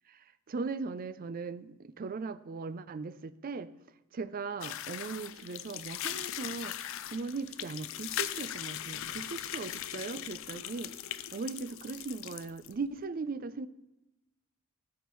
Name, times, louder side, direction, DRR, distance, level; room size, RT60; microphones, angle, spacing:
voice 1, 0.1-3.7 4.1-11.0 11.3-13.7, right 4 dB, 45° right, 0.4 m, -39 dB
sound 1, 4.6-12.7, left 11 dB, 65° left, 0.4 m, -39 dB
14.0 x 7.1 x 3.1 m
head